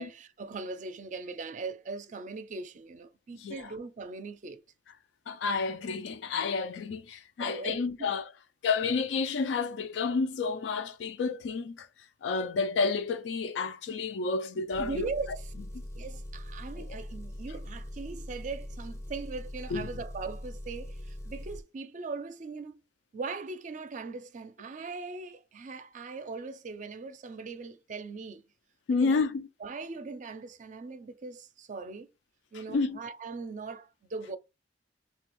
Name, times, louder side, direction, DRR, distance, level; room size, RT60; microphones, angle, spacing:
voice 1, 0.0-4.6 7.4-7.8 14.6-15.5 15.9-22.8 23.1-28.4 29.0-29.2 29.6-32.1 32.5-34.4, right 4 dB, 45° right, 0.4 m, -40 dB
voice 2, 3.3-3.7 5.3-8.3 8.6-15.1 15.7-15.8 16.8-17.0 19.7-19.9 28.9-29.5 32.5-33.0, left 4 dB, 85° left, 0.3 m, -30 dB
Engine, 14.7-21.6, left 1 dB, 15° left, 0.5 m, -41 dB
3.3 x 2.3 x 3.0 m
head